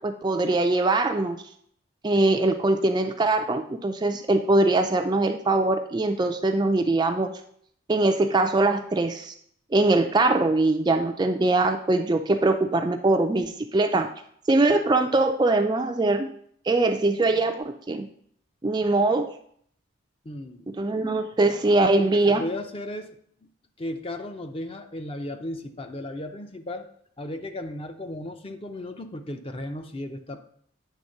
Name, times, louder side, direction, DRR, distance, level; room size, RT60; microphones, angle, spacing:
voice 1, 0.0-1.4 2.0-7.3 7.9-9.3 9.7-14.1 14.5-16.3 16.7-18.1 18.6-19.3 20.7-22.4, right 2 dB, 20° right, 6 dB, 0.3 m, -22 dB
voice 2, 20.2-20.8 22.0-23.2 23.8-26.9 27.2-30.4, left 1 dB, 25° left, 6 dB, 0.6 m, -35 dB
8.5 x 3.5 x 6.5 m, 0.65 s
head